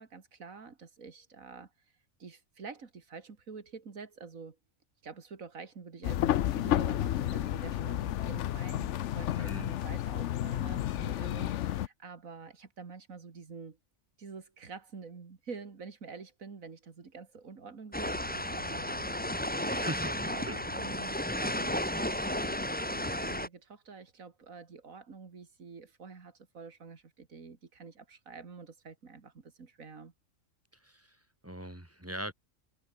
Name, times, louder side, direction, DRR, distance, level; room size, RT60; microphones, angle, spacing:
voice 1, 0.0-1.7 2.2-4.6 5.0-13.8 14.2-19.2 19.6-30.1, right 5 dB, 90° right, 2.6 m, -47 dB
sound 1, 6.0-11.9, left 12 dB, 65° left, 0.9 m, -31 dB
voice 2, 9.4-9.7 19.7-20.1 20.4-20.6 30.8-31.2 31.4-32.3, right 1 dB, 10° right, 3.3 m, -40 dB
sound 2, 17.9-23.5, left 1 dB, 5° left, 1.8 m, -33 dB
Organ, 18.0-23.4, left 6 dB, 85° left, 2.2 m, -50 dB
omnidirectional pair, 1.4 m